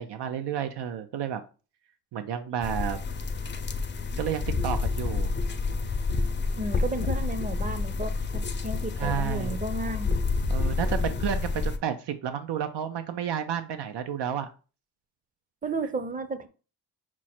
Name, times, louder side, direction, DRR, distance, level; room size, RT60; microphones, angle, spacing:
voice 1, 0.0-1.4 2.1-3.0 4.2-5.3 9.0-9.6 10.5-14.5, right 9 dB, 85° right, 8 dB, 0.5 m, -31 dB
sound 1, 2.6-11.8, left 4 dB, 30° left, 0.4 m, -29 dB
voice 2, 6.6-10.2 15.6-16.5, right 2 dB, 20° right, 11 dB, 0.5 m, -33 dB
6.1 x 2.0 x 4.2 m, 0.35 s
cardioid pair, 100°, 40 cm